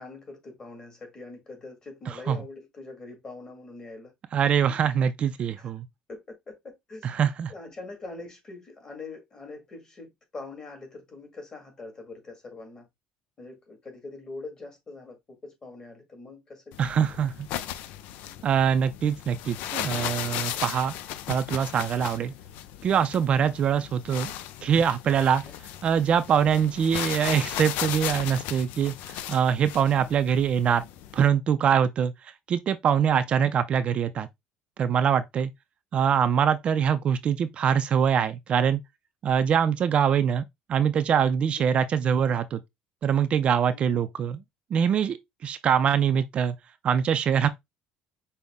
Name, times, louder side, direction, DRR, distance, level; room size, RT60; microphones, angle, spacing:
voice 1, 0.0-4.1 4.7-4.8 5.6-5.7 6.1-7.1 7.5-12.9 13.4-16.9 18.1-18.4 23.4-23.6 25.2-25.5 32.9-33.2 41.6-41.8 43.7-44.1, left 3 dB, 25° left, 1.8 m, -43 dB
voice 2, 2.1-2.4 4.3-5.9 7.0-7.5 16.8-17.5 18.4-20.9 21.3-22.3 22.8-24.3 24.6-25.4 25.8-30.8 31.1-34.3 34.8-35.5 35.9-38.8 39.2-42.6 43.0-44.4 44.7-46.6 46.8-47.5, right 8 dB, 40° right, 0.4 m, -24 dB
sound 1, 16.7-31.3, left 12 dB, 75° left, 0.4 m, -36 dB
5.4 x 2.1 x 3.5 m
cardioid pair, 115°, 3 cm